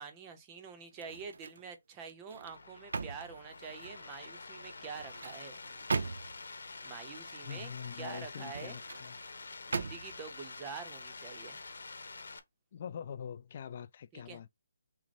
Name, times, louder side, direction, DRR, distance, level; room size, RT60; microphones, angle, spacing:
voice 1, 0.0-5.6 6.8-7.7 8.0-8.8 9.7-11.6 14.1-14.4, right 6 dB, 10° right, 0.6 m, -46 dB
sound 1, 0.9-1.7 2.1-4.1 4.8-6.5 8.3-9.1 9.7-10.3 10.8-11.0, right 4 dB, 60° right, 0.5 m, -39 dB
sound 2, 2.4-12.4, left 3 dB, 85° left, 1.1 m, -47 dB
voice 2, 7.4-9.2 12.7-14.5, left 8 dB, 30° left, 0.3 m, -44 dB
6.0 x 2.1 x 4.2 m
hypercardioid pair, 180°, 0 cm